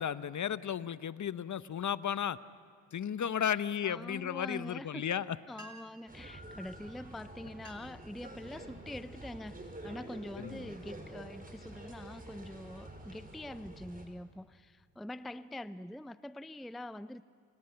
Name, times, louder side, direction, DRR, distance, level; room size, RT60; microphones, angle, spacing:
voice 1, 0.0-2.4 2.9-5.4 10.4-10.6, left 9 dB, 40° left, 15 dB, 1.0 m, -34 dB
voice 2, 3.4-17.2, left 1 dB, ahead, 15 dB, 0.6 m, -45 dB
sound 1, 5.2-5.3 5.5-6.1 7.0-7.1 7.5-8.1 8.6-8.9 9.5-9.8 10.3-11.6, right 2 dB, 40° right, 4.2 m, -55 dB
sound 2, 6.1-14.1, right 1 dB, 20° right, 5.7 m, -48 dB
29.0 x 26.5 x 5.9 m, 2.4 s
hypercardioid pair, 50°, 45 cm